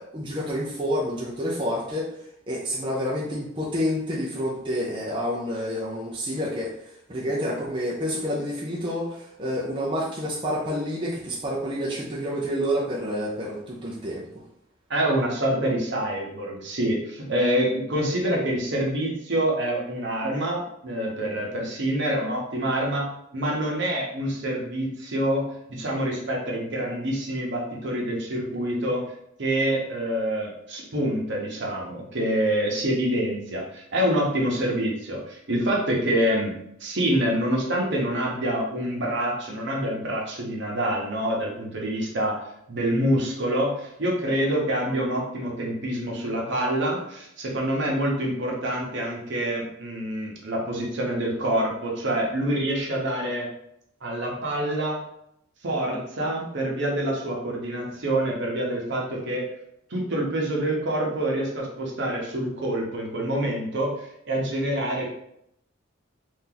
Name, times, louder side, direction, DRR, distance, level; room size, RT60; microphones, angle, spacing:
voice 1, 0.0-2.1 2.5-6.8 7.1-14.3, equal, 25° right, -5 dB, 0.6 m, -28 dB
voice 2, 14.9-29.0 29.4-42.4 42.7-53.5 54.0-55.0 55.6-59.4 59.9-65.1, right 1 dB, 65° right, -2 dB, 0.9 m, -26 dB
2.8 x 2.6 x 3.8 m, 0.76 s
head